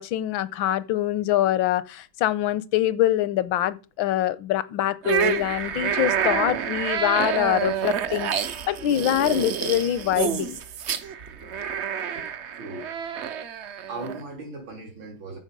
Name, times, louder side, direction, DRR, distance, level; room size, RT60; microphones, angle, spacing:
voice 1, 0.0-10.6, left 13 dB, 85° left, 1.5 m, -24 dB
sound 1, 5.0-14.2, right 8 dB, 55° right, 0.7 m, -28 dB
voice 2, 11.1-11.7 12.1-13.3 13.9-15.4, right 2 dB, 85° right, 4.1 m, -40 dB
14.0 x 5.4 x 5.3 m
omnidirectional pair, 2.1 m